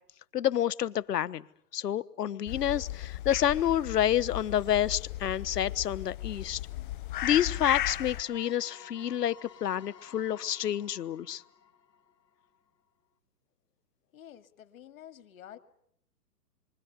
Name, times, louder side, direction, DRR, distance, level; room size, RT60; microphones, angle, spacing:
voice 1, 0.3-1.4 1.7-6.6 7.2-11.4, left 10 dB, 70° left, 17 dB, 1.2 m, -29 dB
sound 1, 2.5-8.2, left 13 dB, 30° left, 1.0 m, -36 dB
sound 2, 8.1-12.7, left 7 dB, 90° left, 3.2 m, -53 dB
voice 2, 14.1-15.6, left 11 dB, 55° left, 9 dB, 2.3 m, -49 dB
27.5 x 24.5 x 8.2 m, 0.72 s
hypercardioid pair, 160°, 49 cm